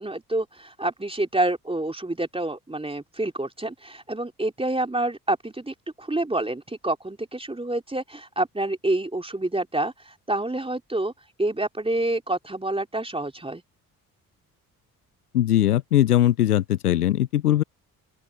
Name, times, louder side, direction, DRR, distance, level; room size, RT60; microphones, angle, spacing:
voice 1, 0.0-11.1 11.4-13.6, right 2 dB, 15° right, 3.5 m, -28 dB
voice 2, 15.3-17.6, left 12 dB, 85° left, 0.9 m, -20 dB
open air
figure-of-eight pair, 45°, 44 cm